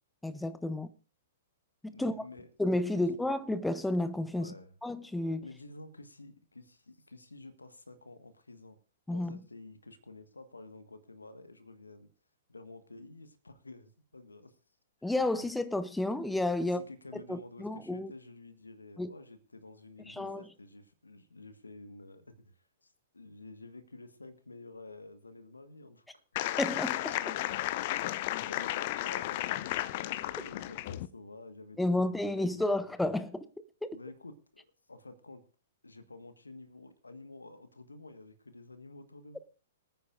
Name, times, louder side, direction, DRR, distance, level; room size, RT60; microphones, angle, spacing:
voice 1, 0.2-0.9 1.8-2.2 2.6-4.5 4.8-5.5 9.1-9.4 15.0-16.8 17.3-18.1 19.0-19.1 20.1-20.5 26.6-27.2 31.8-33.5 33.8-34.0, left 1 dB, 5° left, 0.6 m, -31 dB
voice 2, 1.9-2.5 2.9-3.2 4.3-4.7 5.4-8.8 9.1-12.1 12.5-14.6 16.6-26.4 28.4-30.0 30.3-32.9 33.9-35.4 35.8-39.4, left 2 dB, 85° left, 1.5 m, -50 dB
sound 1, 26.4-31.1, left 15 dB, 45° left, 0.6 m, -33 dB
24.5 x 9.4 x 2.5 m
figure-of-eight pair, 110°, 0 cm